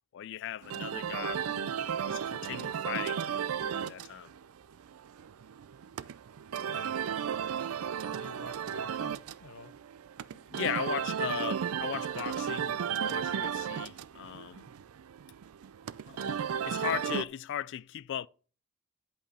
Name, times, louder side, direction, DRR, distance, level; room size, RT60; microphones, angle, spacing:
voice 1, 0.1-1.8 2.0-3.2 3.6-4.3 10.3-14.7 16.1-18.3, left 10 dB, 60° left, 0.3 m, -38 dB
sound 1, 0.6-17.2, right 8 dB, 80° right, 0.4 m, -34 dB
voice 2, 7.8-9.7, left 4 dB, 90° left, 0.7 m, -50 dB
10.5 x 5.5 x 4.2 m
head